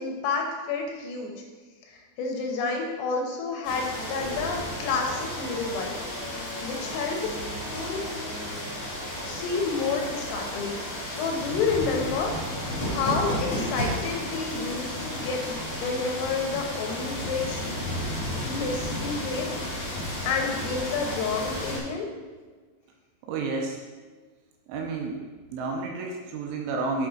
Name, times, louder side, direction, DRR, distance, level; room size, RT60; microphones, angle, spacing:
voice 1, 0.0-1.3 1.9-6.0 6.3-7.4 7.7-8.0 9.2-17.9 18.3-19.5 20.3-22.1, left 4 dB, 85° left, 1 dB, 3.6 m, -30 dB
sound 1, 3.6-21.8, left 1 dB, 40° left, 2.1 m, -33 dB
voice 2, 23.2-23.8 24.7-25.2 25.5-27.1, right 3 dB, 80° right, 1 dB, 3.1 m, -30 dB
7.7 x 6.2 x 4.3 m, 1.4 s
omnidirectional pair, 6.0 m